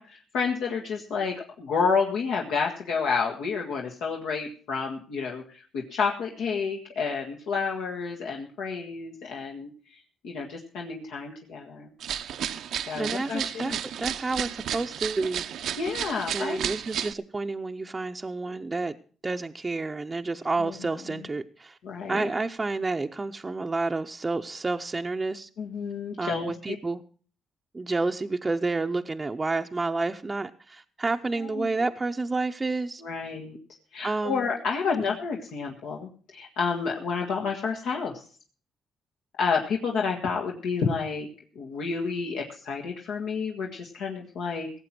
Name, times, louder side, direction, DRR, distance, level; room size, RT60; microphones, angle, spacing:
voice 1, 0.0-11.9 12.8-13.8 15.8-16.6 20.6-20.7 21.8-22.3 25.6-26.8 31.4-31.7 33.0-33.6 33.9-38.2 39.4-41.3 41.6-44.7, left 5 dB, 85° left, -1 dB, 1.7 m, -30 dB
sound 1, 12.0-17.1, right 9 dB, 75° right, 0.7 m, -33 dB
voice 2, 13.0-15.5 16.3-19.0 19.2-21.8 22.1-25.5 26.2-27.0 27.7-33.0 34.0-34.5 35.0-35.2, right 3 dB, 25° right, 5 dB, 0.6 m, -30 dB
17.5 x 7.6 x 6.0 m, 0.42 s
cardioid pair, 90°, 0 cm